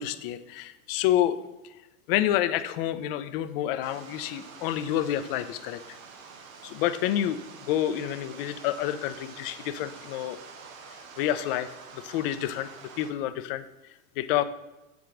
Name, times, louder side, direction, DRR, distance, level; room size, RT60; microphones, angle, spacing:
voice 1, 0.0-1.4 2.1-6.0 6.6-7.4 7.7-10.4 11.2-11.7 11.9-12.7 13.0-13.6 14.2-14.4, left 12 dB, 45° left, 12 dB, 0.5 m, -28 dB
sound 1, 3.8-13.1, right 5 dB, 70° right, 1.1 m, -47 dB
8.1 x 4.7 x 3.7 m, 1.0 s
hypercardioid pair, 125°, 42 cm